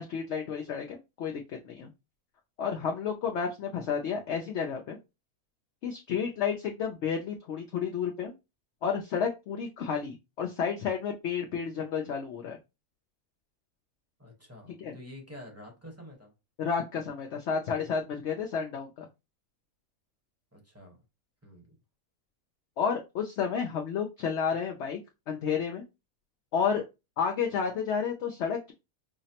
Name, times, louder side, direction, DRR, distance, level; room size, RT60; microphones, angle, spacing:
voice 1, 0.0-1.9 2.6-5.0 5.8-8.3 8.8-12.6 14.8-15.0 16.6-19.1 22.8-25.0 25.3-25.8 26.5-26.8 27.2-28.7, left 6 dB, 70° left, 0.7 m, -31 dB
voice 2, 14.2-16.3 20.5-21.0 21.4-21.8, left 1 dB, 10° right, 0.9 m, -48 dB
5.6 x 2.0 x 2.8 m
omnidirectional pair, 1.7 m